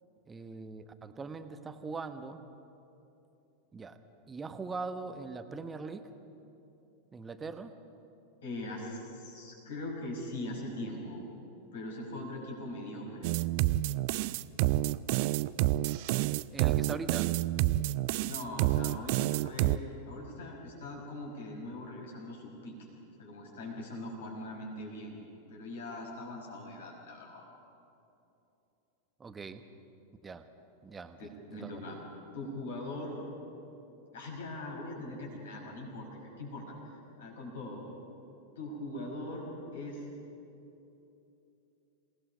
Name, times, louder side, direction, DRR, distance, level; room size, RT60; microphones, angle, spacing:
voice 1, 0.3-2.4 3.7-4.0 4.3-6.1 7.1-7.7 16.5-17.3 29.2-29.7 30.2-30.5 30.8-31.2 31.5-31.8, right 4 dB, 15° right, 9 dB, 1.2 m, -41 dB
voice 2, 8.4-11.2 11.7-13.3 18.2-22.8 23.2-25.2 25.5-27.4 31.2-32.0 32.3-33.2 34.1-37.8 38.6-40.0, left 1 dB, 60° left, -1 dB, 5.5 m, -41 dB
sound 1, 13.2-19.8, right 17 dB, 45° right, 0.4 m, -28 dB
27.5 x 18.5 x 5.2 m, 2.9 s
figure-of-eight pair, 90°, 0 cm